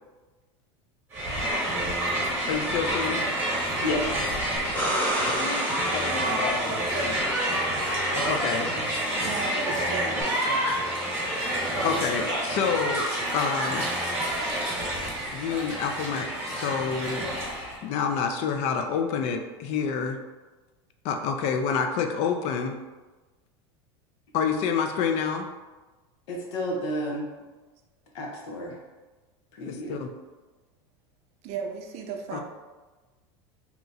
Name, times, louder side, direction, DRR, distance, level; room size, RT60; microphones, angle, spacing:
Crowd, 1.1-17.8, right 1 dB, 15° right, 1.1 m, -28 dB
voice 1, 2.5-3.2 5.2-7.3 8.3-8.7 11.8-13.1 13.3-13.9 15.3-17.3 17.8-20.2 21.0-22.8 24.3-25.5 29.7-30.1 32.3-32.4, left 6 dB, 50° left, 6 dB, 0.4 m, -28 dB
sound 1, 4.6-7.4 10.2-10.3, equal, 10° left, 1.1 m, -31 dB
voice 2, 9.1-10.8 31.4-32.4, right 6 dB, 45° right, 4 dB, 0.5 m, -36 dB
voice 3, 26.3-27.3 28.1-28.8 29.6-30.0, left 1 dB, 80° left, -1 dB, 0.9 m, -31 dB
2.9 x 2.3 x 3.9 m, 1.2 s
supercardioid pair, 125°, 15 cm